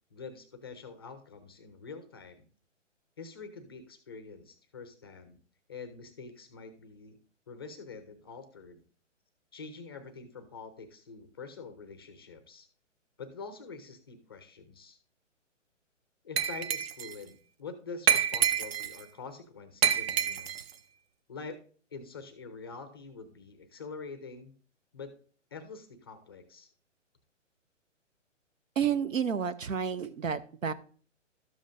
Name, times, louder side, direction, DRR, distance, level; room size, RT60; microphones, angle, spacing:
voice 1, 0.1-2.5 3.2-5.4 5.7-7.2 7.5-8.8 9.5-12.7 13.2-15.0 16.2-20.5 21.3-21.6 21.9-24.5 24.9-25.1 25.5-26.7, left 4 dB, 20° left, 9 dB, 0.4 m, -45 dB
Glass, 16.4-17.1 18.1-19.0 19.8-20.7, right 8 dB, 55° right, 0.7 m, -27 dB
voice 2, 28.8-30.7, right 7 dB, 90° right, 13 dB, 0.9 m, -30 dB
12.5 x 7.3 x 2.6 m, 0.42 s
hypercardioid pair, 145°, 38 cm